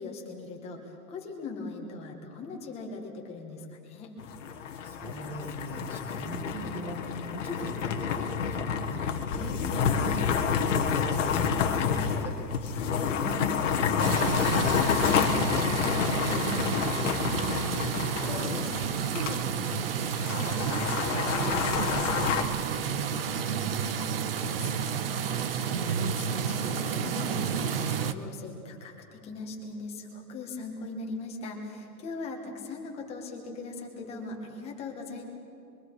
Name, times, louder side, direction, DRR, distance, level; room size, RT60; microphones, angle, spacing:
voice 1, 0.0-4.2 12.7-13.0 23.8-35.3, left 3 dB, 10° left, 1 dB, 1.8 m, -40 dB
sound 1, 4.2-19.4 19.7-19.8 20.1-22.4, left 7 dB, 50° left, 1.7 m, -29 dB
voice 2, 4.5-12.4 12.7-17.4 17.7-20.1 20.4-23.2, right 1 dB, 5° right, 0 dB, 2.1 m, -39 dB
sound 2, 14.0-28.1, right 7 dB, 35° right, 0.8 m, -31 dB
26.0 x 23.5 x 4.9 m, 2.7 s
hypercardioid pair, 165°, 48 cm